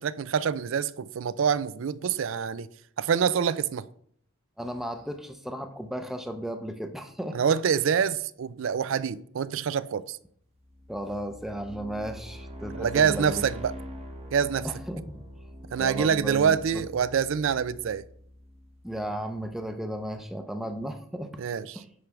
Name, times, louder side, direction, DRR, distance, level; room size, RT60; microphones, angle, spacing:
voice 1, 0.0-2.7 3.0-3.8 7.3-10.2 12.8-13.8 14.3-14.7 15.7-18.0 21.4-21.8, right 7 dB, 60° right, 0.4 m, -26 dB
voice 2, 4.6-7.4 10.9-13.4 14.6-15.1 15.7-16.8 18.8-21.3 21.7-21.9, right 1 dB, ahead, 0.6 m, -35 dB
sound 1, 10.6-19.4, equal, 30° right, 1.0 m, -44 dB
9.5 x 3.3 x 5.8 m
head